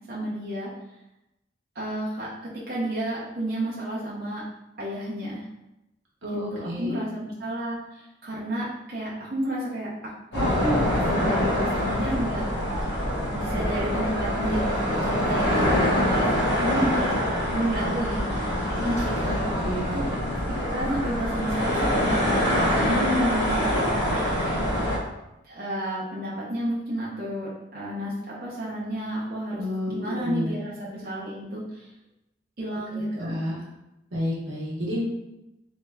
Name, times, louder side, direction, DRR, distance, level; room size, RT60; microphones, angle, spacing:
voice 1, 0.1-0.7 1.8-4.4 4.8-5.4 6.5-10.8 11.1-12.4 13.3-15.7 16.0-17.2 17.5-18.3 18.7-19.4 19.9-20.1 20.7-22.2 22.8-23.7 23.9-24.5 25.5-31.9 32.6-33.4, right 1 dB, 50° right, -7 dB, 0.7 m, -31 dB
voice 2, 6.2-7.0 18.8-18.9 19.6-20.0 29.6-30.5 33.2-33.6 34.1-35.0, equal, 90° right, -5 dB, 1.1 m, -30 dB
sound 1, 10.3-25.0, equal, 70° left, 1.0 m, -25 dB
3.2 x 2.8 x 2.3 m, 0.90 s
head